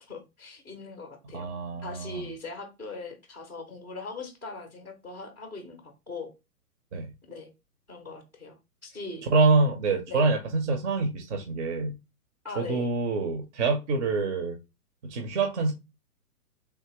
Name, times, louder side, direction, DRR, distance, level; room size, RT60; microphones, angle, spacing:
voice 1, 0.1-1.5 1.8-6.3 7.3-7.5 7.9-8.6 8.8-9.2 10.1-10.2 12.4-12.9, left 3 dB, 5° right, 0.5 m, -40 dB
voice 2, 1.3-2.2 6.9-7.1 9.3-11.9 12.6-14.6 15.0-15.7, right 3 dB, 50° right, 0.9 m, -26 dB
3.5 x 2.8 x 2.9 m
hypercardioid pair, 130°, 47 cm